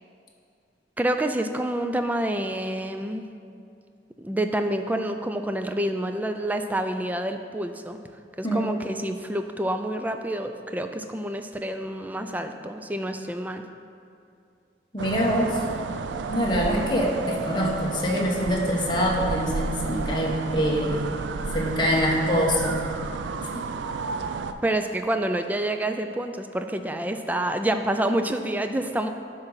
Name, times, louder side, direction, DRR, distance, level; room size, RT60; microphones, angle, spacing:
voice 1, 1.0-3.3 4.2-8.0 8.4-13.6 24.6-29.1, right 1 dB, 10° right, 7 dB, 0.3 m, -28 dB
voice 2, 14.9-15.6 16.3-21.0 21.5-22.8, equal, 25° left, -2 dB, 1.1 m, -24 dB
sound 1, 15.0-24.5, right 4 dB, 85° right, 0.4 m, -32 dB
10.5 x 3.9 x 5.6 m, 2.5 s
head